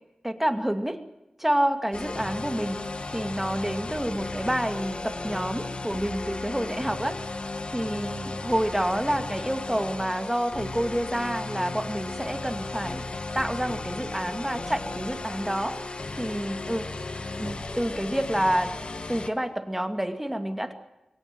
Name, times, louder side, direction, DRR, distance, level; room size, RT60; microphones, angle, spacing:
voice 1, 0.2-1.0 1.4-2.8 3.1-7.4 7.7-13.0 13.3-15.8 16.2-16.9 17.4-18.8 19.1-20.7, right 1 dB, 10° right, 7 dB, 2.4 m, -28 dB
sound 1, 1.9-19.3, left 3 dB, 55° left, 1.7 m, -35 dB
22.5 x 17.5 x 9.3 m, 0.95 s
wide cardioid pair, 75°, 2 cm